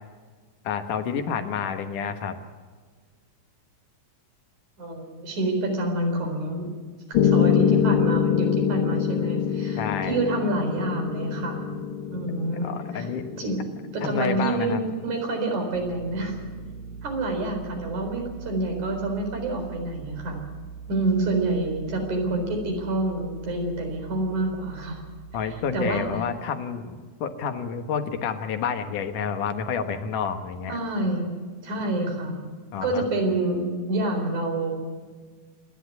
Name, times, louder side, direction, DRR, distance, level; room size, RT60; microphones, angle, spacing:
voice 1, 0.6-2.4 9.8-10.2 12.6-13.2 14.0-14.8 25.3-30.8 32.7-33.0, left 6 dB, 85° left, 7 dB, 3.0 m, -29 dB
voice 2, 4.8-6.7 7.1-11.6 12.1-13.1 13.4-13.6 13.9-16.4 17.0-20.5 20.9-25.1 25.7-26.1 30.7-31.3 31.6-32.4 32.8-34.7, right 2 dB, 70° right, 3 dB, 5.6 m, -27 dB
Piano, 7.1-15.2, left 8 dB, 60° left, 1.5 m, -25 dB
sound 1, 15.7-26.2, right 6 dB, 35° left, 1.6 m, -42 dB
27.0 x 11.0 x 9.5 m, 1.5 s
omnidirectional pair, 3.5 m